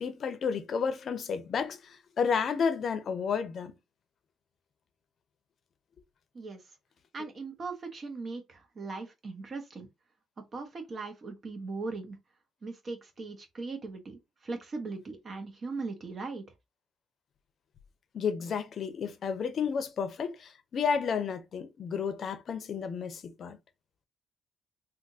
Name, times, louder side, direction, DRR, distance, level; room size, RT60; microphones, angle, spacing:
voice 1, 0.0-3.7 18.1-23.6, left 6 dB, 55° left, 0.7 m, -31 dB
voice 2, 7.1-9.9 10.5-12.2 12.6-16.4, right 3 dB, 45° right, 1.2 m, -39 dB
3.5 x 2.5 x 2.7 m
cardioid pair, 90°, 0 cm